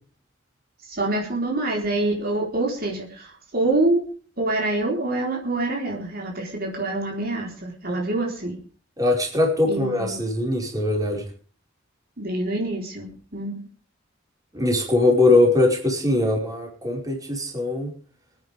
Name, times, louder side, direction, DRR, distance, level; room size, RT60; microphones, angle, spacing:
voice 1, 0.8-4.0 4.4-8.6 9.6-10.2 12.2-13.6, right 2 dB, 50° right, 0 dB, 4.1 m, -26 dB
voice 2, 9.0-11.3 14.5-17.9, left 2 dB, 20° right, 0 dB, 5.2 m, -21 dB
26.0 x 9.9 x 3.6 m, 0.41 s
head